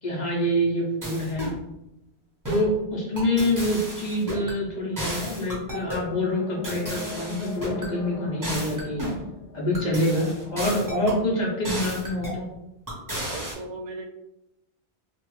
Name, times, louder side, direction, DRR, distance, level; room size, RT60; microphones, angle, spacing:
voice 1, 0.0-1.5 2.5-9.1 9.5-12.5, left 1 dB, 45° left, -3 dB, 0.7 m, -26 dB
sound 1, 1.0-1.6 2.4-2.7 3.2-4.6 5.0-6.1 6.6-7.9 8.4-9.2 9.7-11.2 11.6-12.4 12.9-13.5, equal, 20° right, 0.7 m, -33 dB
sound 2, 5.4-10.5, left 1 dB, 85° left, 0.9 m, -40 dB
voice 2, 13.1-14.1, right 2 dB, 90° right, 3 dB, 0.9 m, -37 dB
2.9 x 2.2 x 3.0 m, 0.87 s
omnidirectional pair, 1.1 m